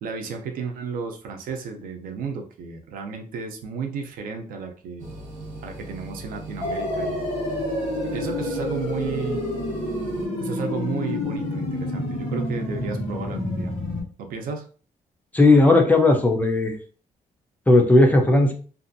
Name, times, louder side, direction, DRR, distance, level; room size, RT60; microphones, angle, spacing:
voice 1, 0.0-5.1 5.6-7.3 8.0-9.4 10.4-13.7 14.2-14.7, right 5 dB, 85° right, 4 dB, 0.6 m, -33 dB
sound 1, 5.0-10.3, right 1 dB, 60° right, 0.9 m, -39 dB
sound 2, 6.6-14.0, left 1 dB, 40° left, 1.1 m, -28 dB
voice 2, 15.3-16.7 17.7-18.5, left 2 dB, 10° left, 2 dB, 0.4 m, -16 dB
2.6 x 2.5 x 2.6 m, 0.40 s
cardioid pair, 170°, 14 cm